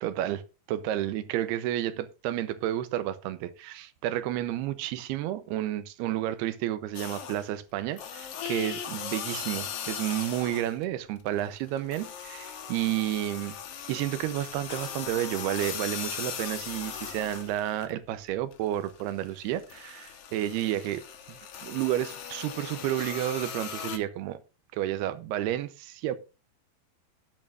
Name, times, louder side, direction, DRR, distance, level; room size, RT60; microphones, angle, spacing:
voice 1, 0.0-0.4 0.7-13.6 13.9-21.0 21.3-24.4 24.7-26.2, right 13 dB, 90° right, 2.8 m, -31 dB
sound 1, 6.9-7.6 7.9-10.8 11.2-17.9 18.3-24.0, left 8 dB, 65° left, 1.5 m, -38 dB
19.5 x 8.8 x 2.5 m
omnidirectional pair, 4.6 m